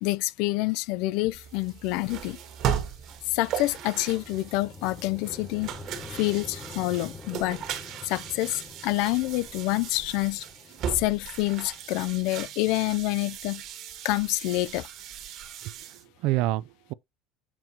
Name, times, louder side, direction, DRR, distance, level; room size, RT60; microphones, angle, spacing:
voice 1, 0.0-2.4 3.3-5.7 6.1-7.6 8.0-10.5 10.9-13.6 14.0-14.9, left 19 dB, 70° left, 0.4 m, -27 dB
sound 1, 1.3-16.0, right 9 dB, 50° right, 1.3 m, -37 dB
sound 2, 2.5-12.8, left 3 dB, 15° left, 0.9 m, -47 dB
voice 2, 15.6-16.9, right 17 dB, 65° right, 0.3 m, -29 dB
7.4 x 4.5 x 2.8 m
cardioid pair, 155°, 0 cm